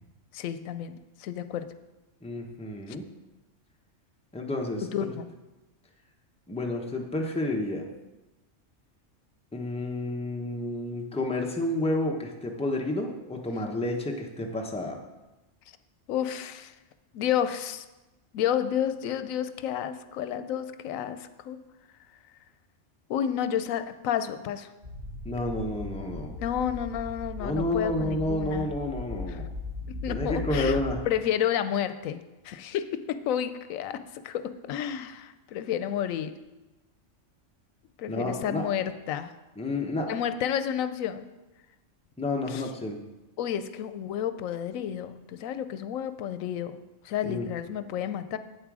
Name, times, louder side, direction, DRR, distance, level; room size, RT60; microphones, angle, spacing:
voice 1, 0.3-1.7 2.9-3.0 4.8-5.3 16.1-16.7 17.1-17.8 18.3-21.6 23.1-24.7 26.3-28.7 29.3-29.4 30.0-30.8 31.1-32.2 32.4-36.3 38.0-39.3 40.1-41.3 42.5-42.7 43.4-48.4, left 9 dB, 85° left, 11 dB, 1.0 m, -31 dB
voice 2, 2.2-3.0 4.3-5.1 6.5-7.9 9.5-15.0 25.2-26.3 27.4-29.5 30.1-31.0 38.1-38.6 39.6-40.1 42.2-43.0 47.2-47.5, left 1 dB, 5° left, 1 dB, 0.8 m, -30 dB
sound 1, 24.8-31.0, left 3 dB, 35° right, 2.2 m, -37 dB
8.5 x 7.6 x 4.8 m, 1.1 s
omnidirectional pair, 1.4 m